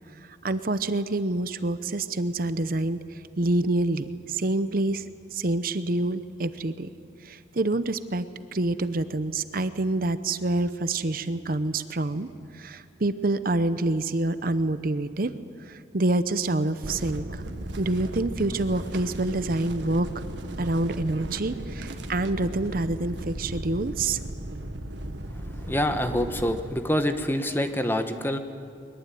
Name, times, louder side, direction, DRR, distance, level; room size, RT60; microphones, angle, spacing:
voice 1, 0.2-5.0 5.3-6.9 7.2-8.3 8.5-15.3 15.6-17.4 17.8-20.1 20.6-24.2, right 2 dB, 55° right, 12 dB, 0.8 m, -27 dB
sound 1, 16.8-26.6, right 1 dB, 85° right, 1.6 m, -36 dB
voice 2, 25.6-28.4, equal, 10° left, 8 dB, 1.2 m, -26 dB
22.0 x 22.0 x 9.3 m, 2.5 s
head